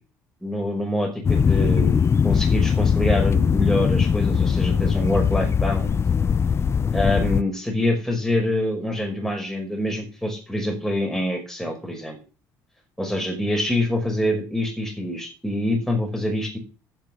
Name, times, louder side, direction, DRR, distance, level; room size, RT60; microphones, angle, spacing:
voice 1, 0.4-2.0 2.2-6.0 6.9-12.2 13.0-16.6, left 1 dB, 5° left, 1 dB, 5.5 m, -25 dB
sound 1, 1.2-7.4, left 6 dB, 35° left, 0.6 m, -20 dB
8.9 x 8.3 x 7.8 m, 0.34 s
supercardioid pair, 75°, 8 cm